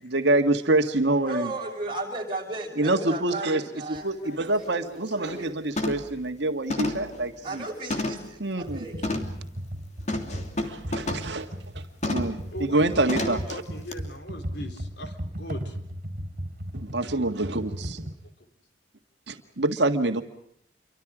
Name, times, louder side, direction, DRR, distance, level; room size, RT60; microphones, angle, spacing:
voice 1, 0.0-1.5 2.8-3.6 3.9-7.6 8.4-8.8 10.6-11.5 12.1-13.4 16.7-18.0 19.3-20.2, right 2 dB, 70° right, 6 dB, 1.9 m, -26 dB
voice 2, 1.2-4.1 4.6-5.6 7.4-9.1, right 2 dB, 25° right, 0 dB, 6.6 m, -35 dB
voice 3, 4.0-4.4 6.1-6.2 10.3-10.5 12.5-15.8 18.2-18.3, equal, 65° left, 7 dB, 3.9 m, -40 dB
sound 1, 4.0-4.1 4.5-4.7 5.1-5.4 5.8-6.2 6.7-8.4 9.0-9.4 10.1-11.4 12.0-12.4 13.1-13.5 13.9-14.0, left 1 dB, 40° left, 2.9 m, -31 dB
Computer keyboard, 8.6-18.1, equal, 45° right, 4.3 m, -36 dB
28.5 x 24.5 x 5.0 m, 0.69 s
head